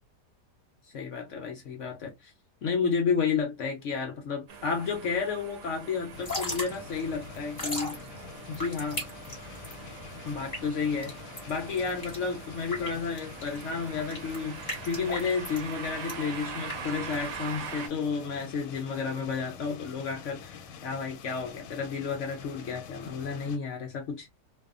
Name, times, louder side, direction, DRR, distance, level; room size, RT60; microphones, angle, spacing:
voice 1, 0.8-2.3 2.6-8.0 8.5-9.0 10.2-11.2 11.5-24.3, left 5 dB, 65° left, 0.7 m, -31 dB
sound 1, 4.5-17.9, right 6 dB, 60° right, 0.9 m, -43 dB
sound 2, 6.1-23.6, left 6 dB, 90° left, 1.2 m, -46 dB
Drip / Trickle dribble, 6.1-17.7, left 1 dB, 30° left, 1.0 m, -39 dB
2.7 x 2.4 x 2.3 m
omnidirectional pair, 1.8 m